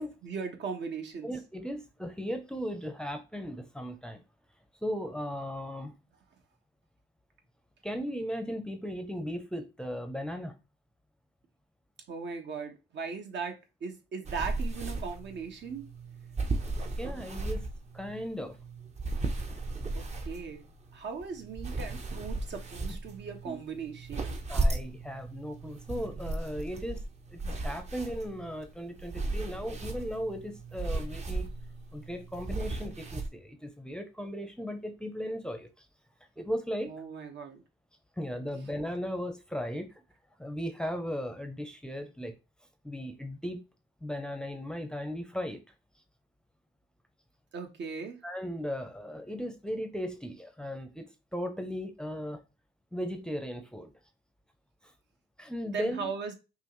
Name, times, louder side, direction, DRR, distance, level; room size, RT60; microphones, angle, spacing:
voice 1, 0.2-1.3 12.1-15.9 19.9-24.4 36.9-37.6 47.5-48.2 55.7-56.3, right 5 dB, 65° right, 1.1 m, -38 dB
voice 2, 1.2-4.2 4.8-6.0 7.8-10.6 17.0-17.7 17.9-18.6 22.9-23.0 23.5-23.6 24.5-27.0 27.3-31.5 31.9-35.9 36.4-36.9 38.2-39.9 40.4-42.3 42.8-43.6 44.0-45.6 48.2-52.4 52.9-53.9 55.4-56.1, equal, 5° left, 0.6 m, -37 dB
sound 1, 14.3-33.3, right 2 dB, 35° right, 0.8 m, -36 dB
5.5 x 2.5 x 3.1 m
cardioid pair, 90°, 20 cm